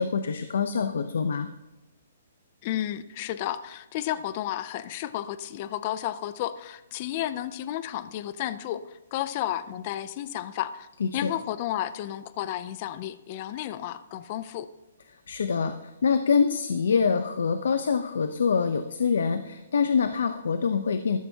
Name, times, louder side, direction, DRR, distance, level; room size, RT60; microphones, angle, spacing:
voice 1, 0.0-1.5 11.0-11.3 15.3-21.2, left 6 dB, 70° left, 10 dB, 0.6 m, -25 dB
voice 2, 2.6-10.9 11.1-14.7, left 12 dB, 25° left, 14 dB, 0.3 m, -32 dB
14.0 x 12.5 x 2.8 m, 1.0 s
hypercardioid pair, 180°, 0 cm